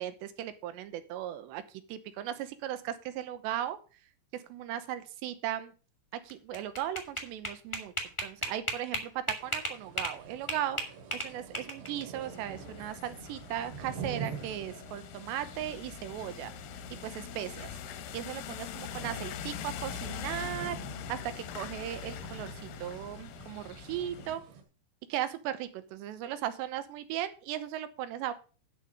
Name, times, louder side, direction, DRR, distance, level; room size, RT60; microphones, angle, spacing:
voice 1, 0.0-1.6 1.9-3.8 4.5-5.7 6.2-7.9 8.2-10.8 11.1-16.5 17.0-17.7 18.1-20.8 21.1-24.4 25.1-28.3, right 11 dB, 90° right, 11 dB, 3.1 m, -37 dB
sound 1, 6.3-10.2 10.5-12.0, equal, 30° left, 0.5 m, -34 dB
sound 2, 9.4-24.6, right 6 dB, 75° right, 4.2 m, -47 dB
sound 3, 12.1-24.3, left 10 dB, 75° left, 2.2 m, -43 dB
10.5 x 5.7 x 6.7 m, 0.36 s
omnidirectional pair, 4.9 m